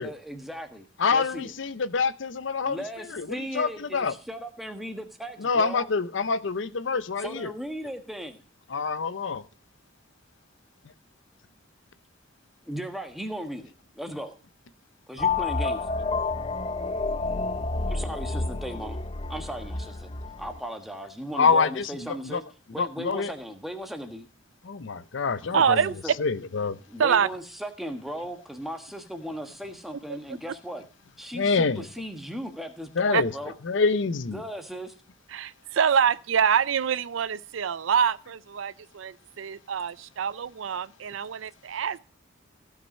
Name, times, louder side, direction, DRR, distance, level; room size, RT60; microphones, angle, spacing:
voice 1, 0.0-0.8 1.1-1.5 2.6-5.9 7.2-8.4 12.6-14.3 15.1-15.9 17.8-19.0 19.3-20.1 20.4-22.4 22.7-24.3 25.5-25.8 26.0-26.1 26.9-30.8 31.2-33.5 34.3-34.9, equal, ahead, 1.3 m, -37 dB
voice 2, 1.0-2.8 3.1-4.1 5.4-7.5 8.7-9.4 21.4-22.4 22.8-23.3 24.6-25.8 26.2-26.8 31.3-31.8 33.0-33.3 33.6-34.4, left 4 dB, 65° left, 0.6 m, -26 dB
sound 1, 15.2-20.6, left 3 dB, 30° left, 0.7 m, -29 dB
voice 3, 25.5-25.9 27.0-27.3 30.1-30.2 33.1-33.2 35.3-42.0, right 7 dB, 75° right, 0.4 m, -25 dB
15.5 x 5.9 x 5.3 m
head